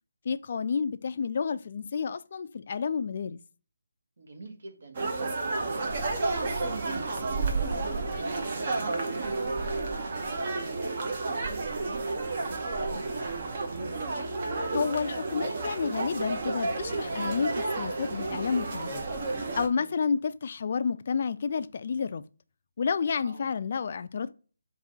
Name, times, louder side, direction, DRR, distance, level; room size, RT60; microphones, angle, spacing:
voice 1, 0.3-3.4 14.7-19.0 19.6-22.2 22.8-24.3, left 6 dB, 45° left, 0.3 m, -30 dB
voice 2, 4.2-7.9 8.4-11.1 11.6-13.4 19.7-19.9 23.2-23.5, right 2 dB, 65° right, 1.5 m, -46 dB
sound 1, 4.9-19.7, right 3 dB, 45° right, 0.8 m, -31 dB
5.0 x 2.6 x 4.1 m
figure-of-eight pair, 160°, 0 cm